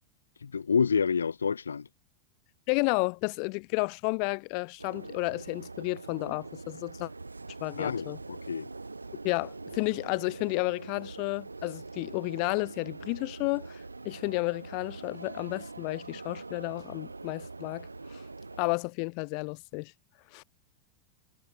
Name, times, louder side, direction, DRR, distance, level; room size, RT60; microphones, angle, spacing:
voice 1, 0.4-1.9 7.8-8.7, left 6 dB, 70° left, 0.8 m, -28 dB
voice 2, 2.7-7.1 7.6-8.2 9.2-18.2 18.6-19.9 20.3-20.4, left 40 dB or more, 45° left, 2.5 m, -32 dB
sound 1, 4.8-18.8, right 3 dB, 80° right, 3.5 m, -43 dB
figure-of-eight pair, 90°, 0 cm